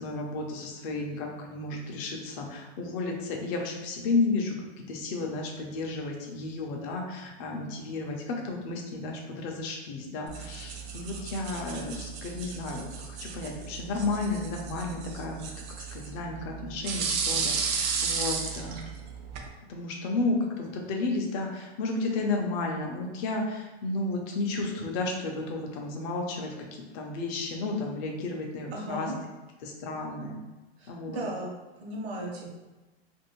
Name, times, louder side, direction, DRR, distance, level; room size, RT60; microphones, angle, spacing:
voice 1, 0.0-15.5 15.8-18.9 19.7-29.1 29.6-30.4 30.9-31.2, left 3 dB, 35° left, 1 dB, 0.6 m, -32 dB
sound 1, 10.3-19.5, right 5 dB, 40° right, 0.4 m, -34 dB
voice 2, 28.7-29.2 30.8-31.5 31.8-32.5, right 1 dB, 70° right, -2 dB, 1.0 m, -35 dB
2.6 x 2.6 x 3.0 m, 1.1 s
supercardioid pair, 145°, 32 cm